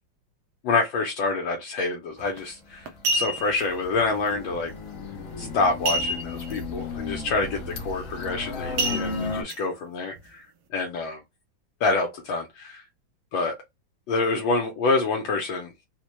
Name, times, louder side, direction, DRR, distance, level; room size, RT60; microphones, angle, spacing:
voice 1, 0.6-4.7 5.4-10.5 10.7-11.2 11.8-12.8 13.3-13.5 14.1-15.7, left 3 dB, 80° left, 1.4 m, -27 dB
sound 1, 2.2-2.4 2.9-3.6 5.8-6.5 6.9-7.0 7.4-7.7 8.8-9.6 10.1-10.2, right 1 dB, 85° right, 1.5 m, -27 dB
sound 2, 3.0-9.4, left 4 dB, 60° left, 0.9 m, -34 dB
4.1 x 2.2 x 3.0 m
omnidirectional pair, 2.1 m